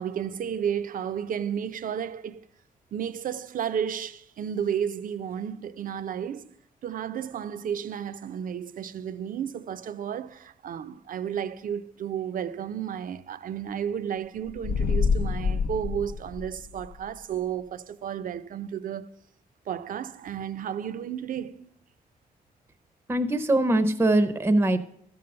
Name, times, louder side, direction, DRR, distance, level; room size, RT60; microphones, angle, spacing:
voice 1, 0.0-2.4 2.9-6.5 6.8-19.1 19.7-21.8, right 8 dB, 65° right, 0.5 m, -32 dB
sound 1, 14.5-16.9, left 5 dB, 65° left, 0.5 m, -27 dB
voice 2, 23.1-24.8, right 1 dB, 15° right, 0.6 m, -22 dB
13.0 x 5.5 x 6.7 m
wide cardioid pair, 140°, 15 cm